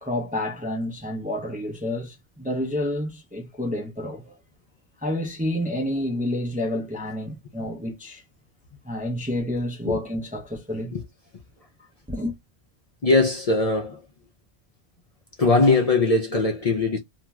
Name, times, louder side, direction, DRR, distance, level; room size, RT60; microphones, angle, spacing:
voice 1, 0.0-4.3 5.0-8.2 8.8-11.0 12.1-12.3, left 1 dB, 10° right, 0.4 m, -29 dB
voice 2, 13.0-14.0 15.4-17.0, left 3 dB, 45° left, 0.5 m, -20 dB
2.5 x 2.3 x 3.0 m
omnidirectional pair, 1.1 m